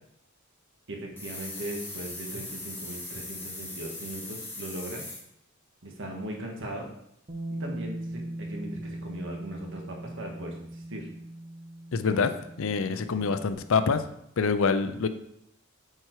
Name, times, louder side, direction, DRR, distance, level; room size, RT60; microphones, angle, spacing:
voice 1, 0.9-5.0 5.8-6.9 7.5-11.1 12.0-12.3, right 1 dB, 60° right, 1 dB, 1.6 m, -39 dB
sound 1, 1.2-5.2, left 2 dB, 10° left, 1.7 m, -39 dB
Bass guitar, 7.3-13.5, right 1 dB, 35° right, 0.8 m, -39 dB
voice 2, 11.9-12.3 12.6-14.0 14.4-15.1, left 5 dB, 70° left, 11 dB, 0.5 m, -25 dB
8.3 x 4.4 x 4.7 m, 0.76 s
head